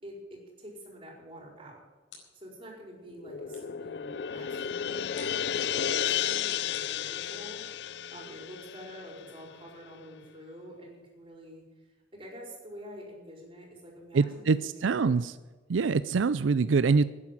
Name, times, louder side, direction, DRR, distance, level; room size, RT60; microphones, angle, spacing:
voice 1, 0.0-1.8 2.3-7.6 8.1-15.2, equal, 30° right, -1 dB, 4.8 m, -47 dB
sound 1, 2.1-2.6 3.5-3.9 5.1-5.5 6.7-7.6, left 5 dB, 85° left, 4.6 m, -54 dB
sound 2, 3.1-9.7, left 9 dB, 60° left, 0.4 m, -33 dB
voice 2, 14.1-15.3 15.7-17.0, right 4 dB, 90° right, 15 dB, 0.5 m, -24 dB
11.5 x 10.0 x 9.1 m, 1.3 s
head